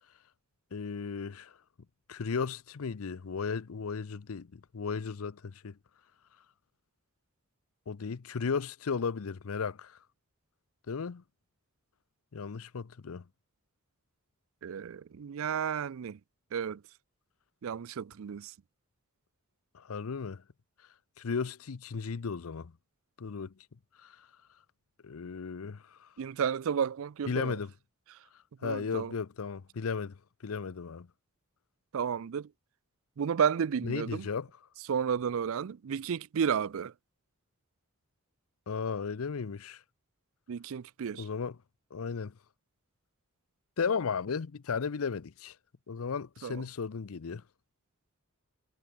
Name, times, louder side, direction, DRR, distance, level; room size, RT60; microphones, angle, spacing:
voice 1, 0.7-1.5 2.1-5.8 7.9-10.0 10.9-11.2 12.3-13.2 19.7-20.4 21.2-22.7 23.2-23.5 24.0-24.3 25.0-26.1 27.3-27.7 28.6-30.2 30.4-31.1 33.8-34.5 38.7-39.8 41.2-41.6 41.9-42.3 43.8-45.5 45.9-47.4, left 5 dB, 70° left, 0.6 m, -35 dB
voice 2, 14.6-16.2 16.5-16.8 17.6-18.5 26.2-27.6 28.6-29.1 31.9-32.5 33.2-34.3 34.9-36.9 40.5-41.3 46.4-46.6, right 7 dB, 65° right, 0.4 m, -32 dB
head